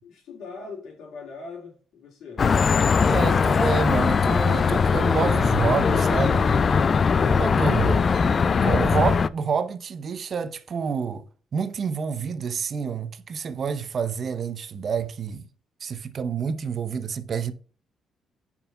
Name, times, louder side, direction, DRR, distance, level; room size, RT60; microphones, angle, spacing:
voice 1, 0.0-2.5, left 4 dB, 80° left, 2.9 m, -41 dB
sound 1, 2.4-9.3, left 5 dB, 45° left, 0.4 m, -20 dB
voice 2, 3.0-6.7 7.2-8.1 8.4-11.3 11.5-15.5 15.8-17.5, right 6 dB, 50° right, 0.6 m, -28 dB
5.5 x 4.6 x 5.4 m
cardioid pair, 90°, 0 cm